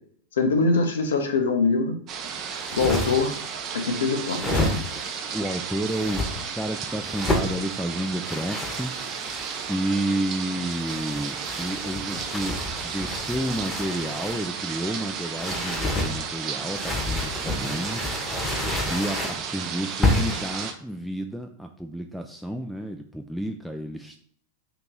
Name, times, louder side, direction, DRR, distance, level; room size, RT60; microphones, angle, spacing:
voice 1, 0.4-2.0 2.7-3.3 3.7-4.6, left 3 dB, 80° left, 6 dB, 0.7 m, -23 dB
sound 1, 2.1-20.7, right 6 dB, 40° right, 0.6 m, -33 dB
sound 2, 2.5-3.4 4.3-5.1 5.9-6.3 7.1-7.5 8.2-9.7 10.7-14.5 15.3-16.1 16.7-19.4 20.0-20.5, left 2 dB, 15° left, 0.9 m, -29 dB
voice 2, 5.3-9.3 9.7-12.6 12.8-18.5 18.9-24.2, right 1 dB, ahead, 2 dB, 0.3 m, -31 dB
2.9 x 2.8 x 3.7 m, 0.63 s
hypercardioid pair, 100°, 0 cm